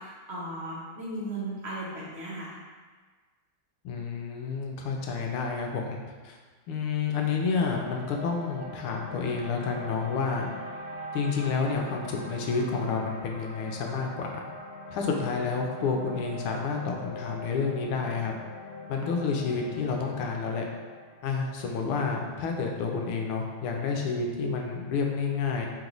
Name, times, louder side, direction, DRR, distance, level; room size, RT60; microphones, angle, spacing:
voice 1, 0.0-2.5 21.8-21.9, right 1 dB, 60° right, -7 dB, 0.7 m, -36 dB
voice 2, 3.8-6.0 6.2-6.4 6.7-10.5 11.1-14.4 14.9-18.3 18.9-20.7 21.2-25.7, left 5 dB, 90° left, 1 dB, 1.5 m, -29 dB
sound 1, 7.5-23.8, left 1 dB, 70° left, 1.0 m, -42 dB
3.6 x 3.0 x 3.8 m, 1.5 s
omnidirectional pair, 2.3 m